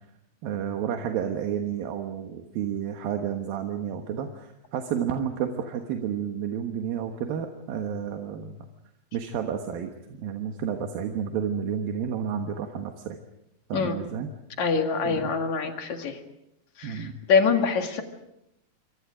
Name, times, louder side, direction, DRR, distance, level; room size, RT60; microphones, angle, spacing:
voice 1, 0.4-8.6 9.1-9.9 10.2-13.2 13.7-14.3 15.0-15.3 16.8-17.2, right 8 dB, 80° right, 4 dB, 3.1 m, -31 dB
voice 2, 14.6-16.2 16.8-18.0, left 5 dB, 55° left, 4 dB, 3.1 m, -25 dB
27.5 x 24.5 x 5.0 m, 0.82 s
omnidirectional pair, 4.2 m